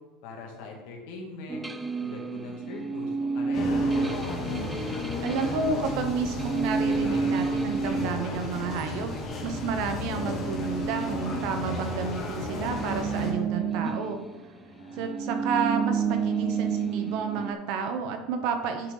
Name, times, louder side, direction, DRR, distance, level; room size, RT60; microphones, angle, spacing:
voice 1, 0.2-1.7 2.0-3.9 14.5-15.2, left 3 dB, 70° left, 1 dB, 1.9 m, -42 dB
sound 1, 1.5-12.1 12.4-17.5, right 5 dB, 10° right, 0.4 m, -31 dB
sound 2, 3.5-13.3, left 2 dB, 30° left, 1.4 m, -34 dB
voice 2, 5.2-9.1 9.4-14.2 15.0-18.9, right 5 dB, 55° right, 6 dB, 0.9 m, -31 dB
10.5 x 4.5 x 3.8 m, 1.2 s
cardioid pair, 170°, 0 cm